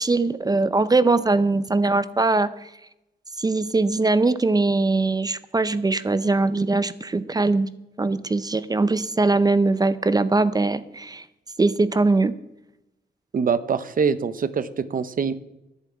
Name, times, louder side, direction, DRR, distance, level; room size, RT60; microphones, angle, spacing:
voice 1, 0.0-2.7 3.4-7.7 8.0-11.2 11.6-12.3, right 3 dB, 20° right, 14 dB, 0.5 m, -21 dB
voice 2, 13.3-15.3, right 6 dB, 50° right, 14 dB, 0.7 m, -24 dB
11.0 x 6.9 x 8.6 m, 0.91 s
wide cardioid pair, 155°, 18 cm